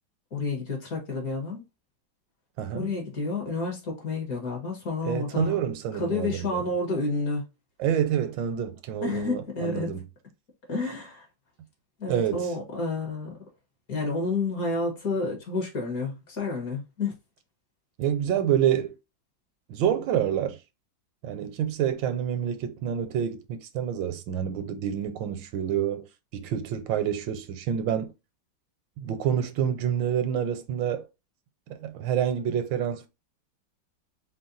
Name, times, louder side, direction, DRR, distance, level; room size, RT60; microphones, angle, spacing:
voice 1, 0.3-1.6 2.7-5.6 5.9-7.4 9.0-10.0 10.7-11.3 12.0-13.4 13.9-17.1, left 3 dB, 50° left, 1.6 m, -30 dB
voice 2, 2.6-2.9 5.0-6.5 7.8-10.0 12.1-12.5 18.0-18.9 19.7-20.6 21.2-26.1 26.3-28.1 29.0-31.1 31.7-33.1, right 9 dB, 80° right, 1.3 m, -27 dB
4.1 x 2.2 x 3.8 m
omnidirectional pair, 2.1 m